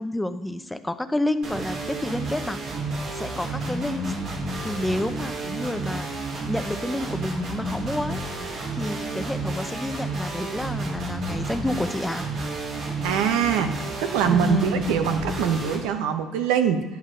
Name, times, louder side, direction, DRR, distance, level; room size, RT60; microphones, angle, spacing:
voice 1, 0.0-2.6 3.1-4.2 4.6-6.1 6.5-8.2 8.7-12.3 14.2-14.9, left 1 dB, 10° left, 10 dB, 0.8 m, -29 dB
sound 1, 1.4-15.8, right 2 dB, 65° right, 4.1 m, -31 dB
voice 2, 13.0-13.7 14.0-16.8, right 8 dB, 80° right, 8 dB, 0.9 m, -23 dB
11.0 x 9.6 x 3.9 m, 1.2 s
supercardioid pair, 80°, 0 cm